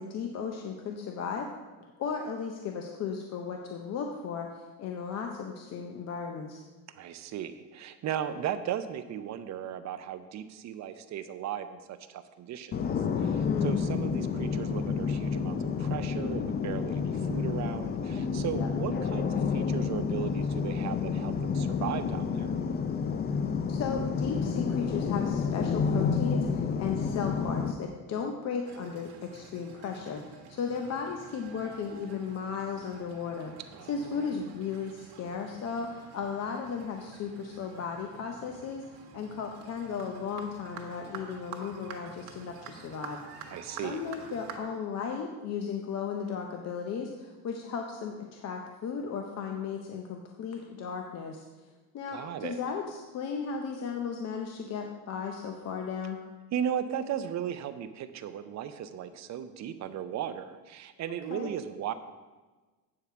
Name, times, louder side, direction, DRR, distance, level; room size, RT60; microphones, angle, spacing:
voice 1, 0.0-1.5 1.8-4.5 4.8-6.6 13.3-13.8 18.5-18.7 23.7-33.5 33.9-43.2 43.7-51.4 51.9-56.2 61.3-61.5, left 6 dB, 45° left, 3 dB, 0.8 m, -35 dB
voice 2, 6.9-12.7 13.2-22.5 33.7-34.3 43.5-44.0 52.1-52.6 56.5-61.9, right 9 dB, 50° right, 10 dB, 0.7 m, -36 dB
sound 1, 12.7-27.7, left 5 dB, 25° left, 0.4 m, -30 dB
sound 2, 28.7-44.6, right 6 dB, 90° right, 1.4 m, -49 dB
8.6 x 4.8 x 6.8 m, 1.3 s
cardioid pair, 145°, 37 cm